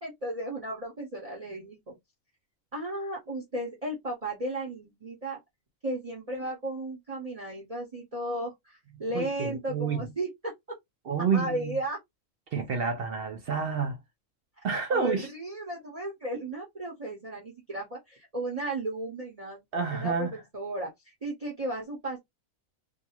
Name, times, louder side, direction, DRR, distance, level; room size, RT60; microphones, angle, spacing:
voice 1, 0.0-2.0 2.7-5.4 5.8-10.5 11.3-12.0 14.9-19.6 19.9-22.2, right 1 dB, 30° right, 0.9 m, -35 dB
voice 2, 8.9-10.0 11.1-11.8 12.5-14.0 14.6-15.3 19.7-20.4, right 5 dB, 60° right, 0.6 m, -29 dB
2.6 x 2.3 x 2.8 m
omnidirectional pair, 1.4 m